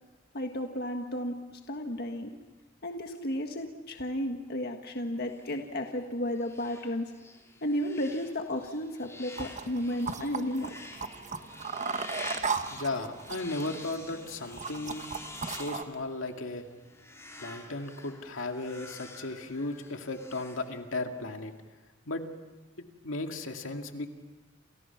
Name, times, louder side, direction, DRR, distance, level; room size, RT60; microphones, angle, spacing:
voice 1, 0.3-2.4 2.8-7.1 7.6-10.8, left 1 dB, 50° left, 4 dB, 1.6 m, -33 dB
sound 1, 5.2-21.2, left 2 dB, 15° left, 3.7 m, -48 dB
sound 2, 9.4-15.8, right 5 dB, 40° right, 1.2 m, -37 dB
voice 2, 12.7-15.1 15.5-16.7 17.2-21.5 22.1-22.2 22.8-24.1, left 2 dB, 80° left, 4 dB, 2.3 m, -36 dB
29.5 x 28.5 x 5.9 m, 1.1 s
head